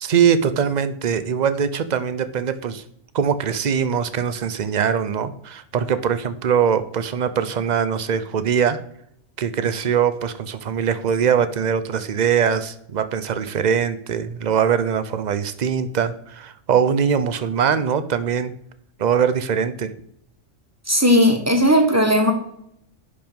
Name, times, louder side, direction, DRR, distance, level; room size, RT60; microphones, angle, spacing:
voice 1, 0.0-2.8 3.1-8.8 9.4-18.5 19.0-19.9, right 7 dB, 45° right, 12 dB, 0.6 m, -22 dB
voice 2, 20.9-22.3, equal, 15° right, 5 dB, 1.2 m, -16 dB
10.5 x 5.3 x 5.3 m, 0.73 s
omnidirectional pair, 1.4 m